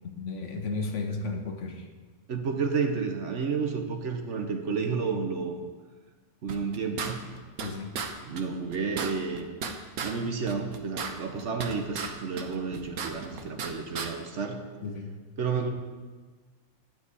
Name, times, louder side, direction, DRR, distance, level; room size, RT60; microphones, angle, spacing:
voice 1, 0.0-1.9 7.6-7.9 14.8-15.1, left 3 dB, 55° left, 4 dB, 1.2 m, -34 dB
voice 2, 2.3-5.6 6.4-7.2 8.2-9.5 10.0-14.6 15.4-15.7, right 5 dB, 55° right, 5 dB, 1.1 m, -31 dB
sound 1, 6.5-7.7 8.0-8.1 8.4-8.5 8.7-10.1 10.5-12.1 12.4-13.7 14.0-14.1, right 6 dB, 80° right, 1.4 m, -34 dB
11.5 x 4.8 x 8.2 m, 1.4 s
omnidirectional pair, 1.5 m